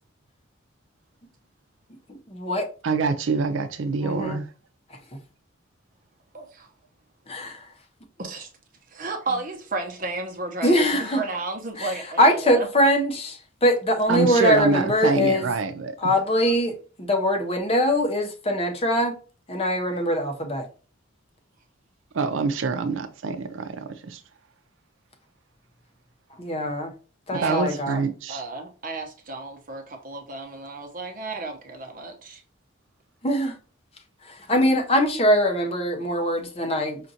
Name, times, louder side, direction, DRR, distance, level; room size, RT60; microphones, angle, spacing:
voice 1, 2.3-2.7 4.0-4.4 7.3-7.6 10.6-11.2 11.8-11.9 12.2-15.5 16.0-16.7 17.0-19.1 19.5-20.6 26.4-26.9 27.3-28.0 33.2-33.5 34.2-37.0, equal, 30° left, 0.7 m, -22 dB
voice 2, 2.8-4.5 14.1-16.1 22.1-24.2 27.3-28.4, right 4 dB, 70° right, 0.5 m, -25 dB
voice 3, 6.3-6.7 8.2-8.5 8.9-12.7 27.3-27.6 28.3-32.4, right 3 dB, 40° right, 0.8 m, -33 dB
5.0 x 2.5 x 2.7 m
head